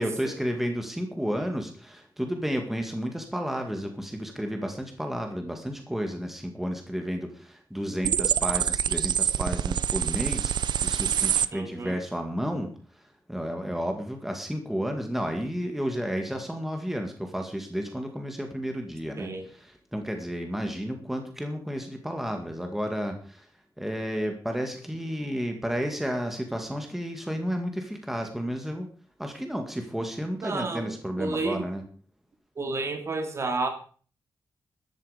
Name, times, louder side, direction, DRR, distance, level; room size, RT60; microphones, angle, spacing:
voice 1, 0.0-10.5 10.8-23.5 23.8-28.9 29.2-31.8, equal, 5° right, 4 dB, 2.1 m, -32 dB
sound 1, 8.0-11.5, right 9 dB, 85° right, 0.5 m, -26 dB
voice 2, 11.5-12.0 19.2-19.4 30.4-30.9 31.2-31.6 32.6-33.7, right 3 dB, 40° right, 6 dB, 2.7 m, -30 dB
14.0 x 12.5 x 5.1 m, 0.42 s
wide cardioid pair, 175°, 7 cm